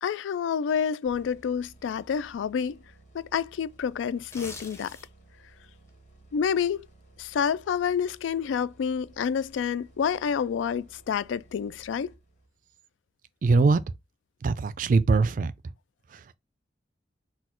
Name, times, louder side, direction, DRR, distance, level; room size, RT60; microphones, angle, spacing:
voice 1, 0.0-2.8 3.1-5.0 6.3-6.9 7.2-12.1, left 7 dB, 90° left, 0.3 m, -28 dB
sound 1, 1.1-12.7, right 2 dB, 40° left, 1.4 m, -56 dB
sound 2, 4.2-5.3 5.7-5.9, left 3 dB, 15° left, 0.7 m, -43 dB
voice 2, 13.4-13.8 14.4-15.5 16.1-16.4, right 4 dB, 45° right, 0.3 m, -22 dB
4.2 x 2.3 x 4.3 m
head